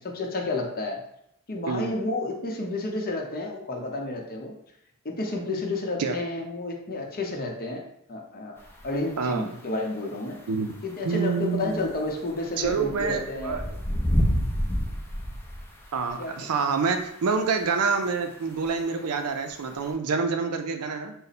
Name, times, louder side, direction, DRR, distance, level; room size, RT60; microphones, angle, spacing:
voice 1, 0.0-1.0 1.5-4.5 5.0-7.8 8.1-8.5 8.8-10.4 10.8-13.6 16.2-16.3, left 2 dB, 40° left, 1 dB, 0.7 m, -31 dB
sound 1, 8.6-8.9 10.7-10.8 11.8-16.0 17.6-17.7 18.6-18.7 19.1-19.2 19.9-20.0, equal, 10° left, 0.6 m, -28 dB
voice 2, 9.2-9.5 10.5-10.8 11.0-11.9 12.6-13.8 15.9-21.1, right 5 dB, 75° right, 6 dB, 0.5 m, -27 dB
4.0 x 2.1 x 4.1 m, 0.72 s
head